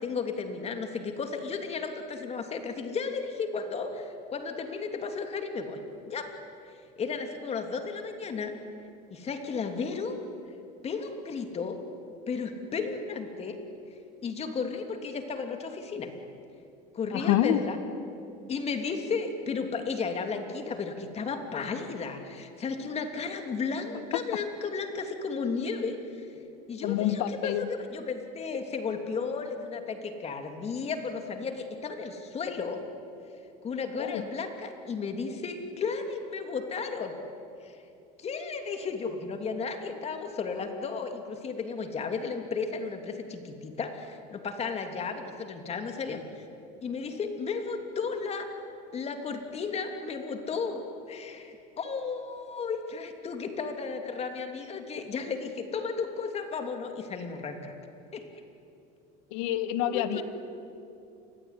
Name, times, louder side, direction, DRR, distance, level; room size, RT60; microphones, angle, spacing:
voice 1, 0.0-5.8 6.1-6.3 7.0-8.5 9.1-10.2 10.8-11.8 12.3-13.6 14.2-16.1 16.9-17.8 18.5-26.3 26.7-32.8 33.6-37.1 37.6-37.8 38.2-46.2 46.8-48.5 48.9-57.7 58.1-58.3 59.9-60.2, left 5 dB, 30° left, 5 dB, 3.0 m, -34 dB
voice 2, 17.1-17.6 26.8-27.7 34.0-34.2 59.3-60.2, left 12 dB, 75° left, 11 dB, 1.7 m, -27 dB
27.5 x 21.5 x 10.0 m, 2.7 s
supercardioid pair, 125°, 20 cm